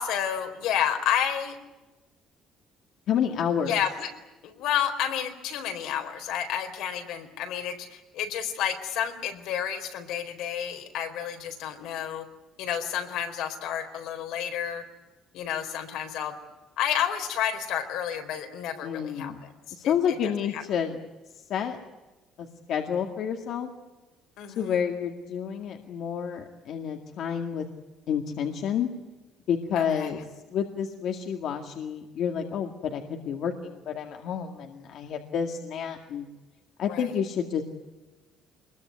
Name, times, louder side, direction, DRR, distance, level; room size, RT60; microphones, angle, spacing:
voice 1, 0.0-1.6 3.7-4.1 4.4-12.2 12.6-14.8 15.3-16.4 16.8-19.3 19.7-19.9 20.5-20.6 24.4-24.7 29.8-30.1 36.9-37.0, left 9 dB, 80° left, 6 dB, 4.3 m, -30 dB
voice 2, 3.1-3.7 18.8-19.4 19.7-21.0 21.3-21.8 22.4-23.7 24.6-27.6 28.1-28.9 29.5-36.3 36.8-37.6, left 8 dB, 60° left, 3 dB, 2.1 m, -29 dB
24.0 x 22.0 x 9.6 m, 1.1 s
cardioid pair, 150°, 0 cm